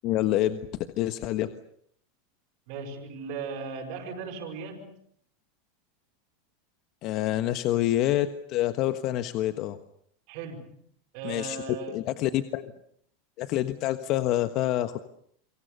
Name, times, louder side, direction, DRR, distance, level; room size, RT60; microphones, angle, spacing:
voice 1, 0.0-0.6 1.0-1.5 7.0-9.8 11.2-11.6 11.9-12.7 13.4-15.0, left 14 dB, 50° left, 10 dB, 1.4 m, -27 dB
voice 2, 2.7-4.9 10.3-10.8 11.1-12.1, right 5 dB, 60° right, 4 dB, 6.3 m, -37 dB
29.0 x 24.0 x 7.0 m, 0.66 s
hypercardioid pair, 115°, 0 cm